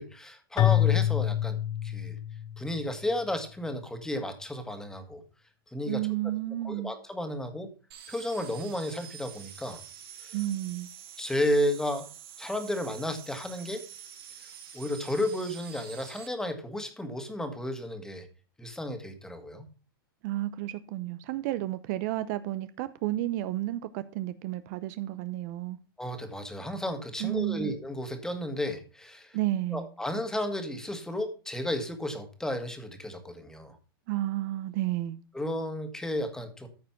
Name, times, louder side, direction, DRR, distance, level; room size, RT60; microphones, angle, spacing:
voice 1, 0.0-2.2 2.6-5.2 5.7-6.1 6.6-7.7 8.1-9.8 10.2-10.4 11.2-12.1 12.4-13.9 14.7-18.3 18.6-19.7 26.0-29.4 29.7-33.8 35.3-36.7, left 1 dB, 5° left, 1.8 m, -33 dB
Keyboard (musical), 0.6-2.8, left 13 dB, 30° left, 0.7 m, -26 dB
voice 2, 5.9-6.9 10.3-10.9 20.2-25.8 27.2-27.7 29.3-29.9 34.1-35.2, right 15 dB, 50° right, 0.7 m, -31 dB
sound 1, 7.9-16.3, right 9 dB, 80° right, 3.4 m, -47 dB
13.5 x 5.1 x 5.9 m
hypercardioid pair, 135°, 12 cm